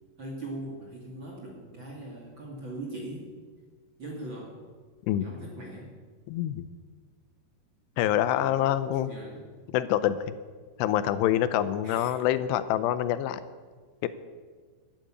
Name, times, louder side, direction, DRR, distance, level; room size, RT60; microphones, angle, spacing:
voice 1, 0.2-3.3 4.0-4.6 5.1-5.9 8.3-9.5 11.8-12.2, right 1 dB, 40° right, -1 dB, 1.9 m, -40 dB
voice 2, 6.3-6.7 8.0-9.1 9.7-10.2 10.8-13.4 14.0-14.1, left 12 dB, 85° left, 13 dB, 2.8 m, -26 dB
12.0 x 11.5 x 8.6 m, 1.5 s
omnidirectional pair, 4.9 m